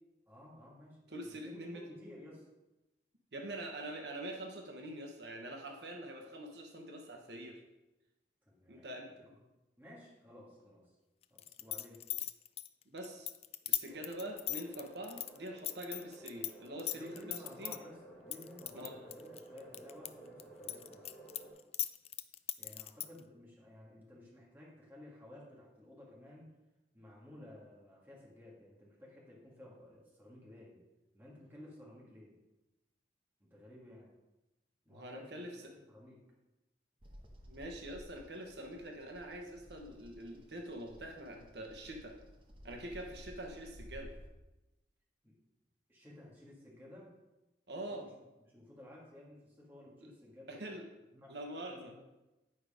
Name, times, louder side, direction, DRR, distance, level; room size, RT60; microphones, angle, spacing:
voice 1, 0.3-2.5 8.5-9.2 9.8-10.9 11.3-12.0 16.9-21.0 22.6-26.5 26.9-30.8 31.1-32.3 33.4-34.1 34.9-36.2 45.2-45.3 45.9-47.2 47.9-48.1 48.5-50.7 51.1-51.3 51.7-51.9, left 1 dB, 10° right, -5 dB, 2.2 m, -54 dB
voice 2, 1.1-1.8 3.3-7.6 8.7-9.3 12.9-13.3 13.7-17.8 18.7-18.9 34.9-35.7 37.5-42.2 42.6-44.1 47.7-48.1 50.0-50.1 50.5-50.8 51.3-51.9, right 1 dB, 75° right, 2 dB, 1.1 m, -45 dB
sound 1, 11.4-16.5 16.8-17.8 18.3-20.1 20.4-23.2, left 13 dB, 35° left, 0.3 m, -38 dB
sound 2, 13.9-21.5, right 1 dB, 5° left, 3.1 m, -55 dB
Bird vocalization bird call bird song, 37.0-44.3, equal, 30° right, 1.0 m, -55 dB
9.9 x 4.9 x 5.1 m, 1.0 s
head